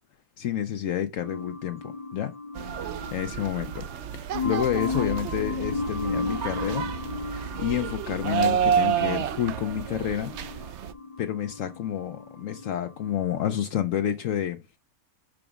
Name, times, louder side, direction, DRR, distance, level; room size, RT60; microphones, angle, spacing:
voice 1, 0.4-2.3 3.1-3.8 4.1-6.9 7.2-10.7 11.2-14.6, left 10 dB, 70° left, 1.0 m, -29 dB
sound 1, 1.2-13.4, left 4 dB, 30° left, 0.8 m, -36 dB
sound 2, 2.6-10.9, right 8 dB, 65° right, 0.8 m, -30 dB
6.0 x 5.0 x 3.5 m
omnidirectional pair, 1.4 m